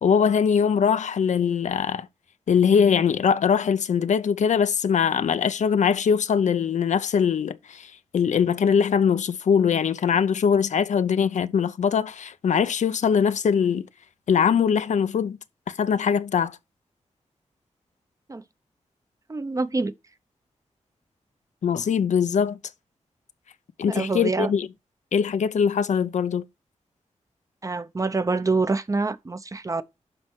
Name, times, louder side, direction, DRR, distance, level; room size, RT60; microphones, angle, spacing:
voice 1, 0.0-2.1 2.5-13.9 14.3-15.4 15.7-16.6 21.6-22.6 23.8-24.7 25.1-26.4, left 7 dB, 80° left, 0.7 m, -22 dB
voice 2, 19.3-19.9 23.9-24.5 27.6-29.8, right 3 dB, 25° right, 0.7 m, -26 dB
11.5 x 4.4 x 4.6 m
wide cardioid pair, 105°, 12 cm